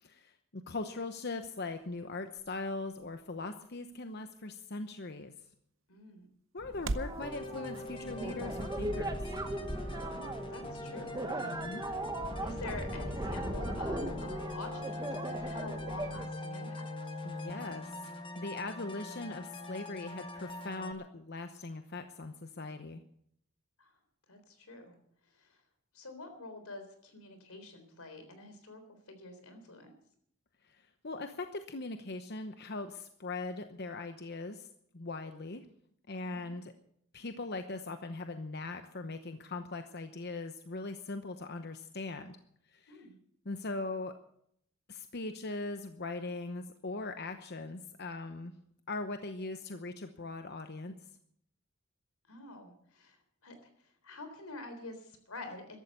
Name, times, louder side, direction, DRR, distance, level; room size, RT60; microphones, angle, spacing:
voice 1, 0.0-5.3 6.5-9.2 11.4-11.9 17.2-23.0 30.6-34.7 34.9-35.7 36.1-36.7 37.1-42.4 42.7-43.0 43.4-44.1 44.9-48.5 48.9-50.9, left 3 dB, 50° left, 8 dB, 0.9 m, -40 dB
sound 1, 0.9-7.2, right 2 dB, 65° right, 0.8 m, -45 dB
voice 2, 5.9-6.3 10.0-11.7 12.4-17.1 23.8-23.9 24.3-25.0 25.2-25.6 25.9-29.9 36.3-36.5 42.9-43.2 52.3-55.8, left 2 dB, 85° left, 8 dB, 3.8 m, -47 dB
sound 2, 6.6-16.2, right 1 dB, 15° right, 1.0 m, -38 dB
sound 3, 7.2-20.9, left 2 dB, 25° left, 1.4 m, -43 dB
14.5 x 12.5 x 6.8 m, 0.68 s
head